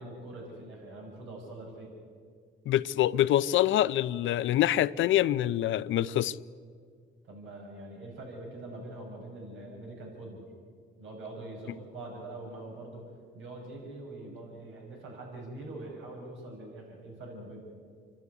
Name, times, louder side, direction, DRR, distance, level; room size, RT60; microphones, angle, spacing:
voice 1, 0.0-1.9 7.2-10.5 11.0-13.0 13.3-17.6, right 2 dB, 80° right, 6.0 m, -43 dB
voice 2, 2.7-6.4, left 13 dB, 75° left, 0.6 m, -25 dB
28.5 x 12.0 x 9.6 m
cardioid pair, 90°, 20 cm